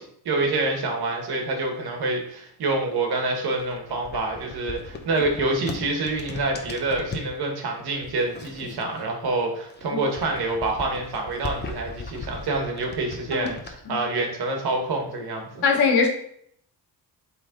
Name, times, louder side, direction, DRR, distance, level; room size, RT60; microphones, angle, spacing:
voice 1, 0.0-15.6, right 2 dB, 70° right, 2 dB, 1.7 m, -27 dB
sound 1, 3.5-7.3 8.0-9.3 9.6-13.7, left 4 dB, 25° left, 0.8 m, -38 dB
voice 2, 15.6-16.1, left 5 dB, 80° left, 2 dB, 1.6 m, -20 dB
8.1 x 3.8 x 3.9 m, 0.68 s
wide cardioid pair, 155°, 39 cm